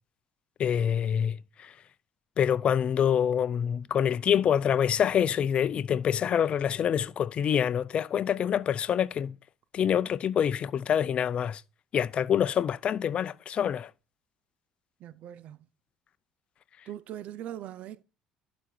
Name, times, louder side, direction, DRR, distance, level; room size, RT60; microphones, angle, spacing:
voice 1, 0.6-1.7 2.4-9.4 9.7-11.6 11.9-13.9, left 8 dB, 45° left, 0.6 m, -26 dB
voice 2, 15.0-15.7 16.9-18.0, right 11 dB, 60° right, 0.6 m, -41 dB
11.5 x 5.2 x 4.4 m
supercardioid pair, 85°, 3 cm